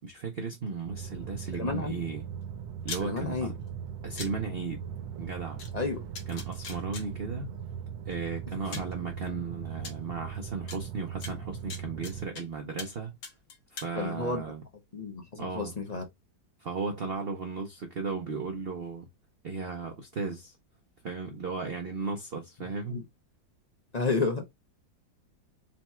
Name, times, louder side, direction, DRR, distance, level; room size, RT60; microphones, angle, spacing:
voice 1, 0.0-2.2 2.8-3.5 4.0-4.8 5.2-5.6 6.3-7.5 8.1-13.2 13.7-14.6 15.4-15.7 16.6-19.1 19.4-20.6 21.0-23.0, right 4 dB, 65° right, 0.5 m, -35 dB
sound 1, 0.9-12.3, right 8 dB, 80° right, 1.3 m, -39 dB
voice 2, 1.5-2.0 3.0-3.5 5.7-6.0 14.0-14.4 14.9-16.0 22.9-23.0 23.9-24.6, left 3 dB, 45° left, 0.5 m, -31 dB
sound 2, 2.8-3.0 4.2-4.3 5.6-5.7 6.2-7.0 8.1-8.2 8.7-8.9 9.8-9.9 10.7-10.8 11.2-12.4 12.8-13.0 13.2-13.9, left 5 dB, 75° left, 1.6 m, -40 dB
4.0 x 2.3 x 4.2 m
omnidirectional pair, 2.0 m